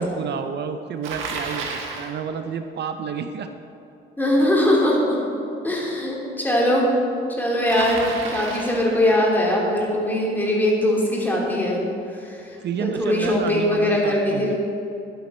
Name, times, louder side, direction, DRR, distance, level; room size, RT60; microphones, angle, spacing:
voice 1, 0.0-3.5 4.4-4.5 5.7-5.8 12.6-14.5, right 7 dB, 60° right, 8 dB, 0.5 m, -30 dB
Bicycle, 1.0-2.1 7.7-8.9, right 4 dB, 85° right, 1.4 m, -31 dB
voice 2, 4.2-5.2 5.6-6.9 7.4-11.8 12.1-14.5, left 1 dB, 10° left, -4 dB, 2.9 m, -21 dB
11.0 x 9.2 x 4.3 m, 2.6 s
cardioid pair, 90°, 20 cm